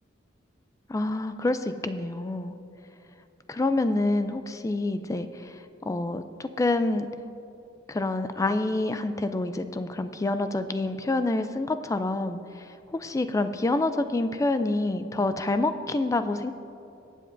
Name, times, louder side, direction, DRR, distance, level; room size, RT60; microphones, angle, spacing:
voice 1, 0.9-2.6 3.5-7.1 7.9-16.5, left 2 dB, 15° left, 10 dB, 0.3 m, -27 dB
19.5 x 7.6 x 2.6 m, 2.7 s
head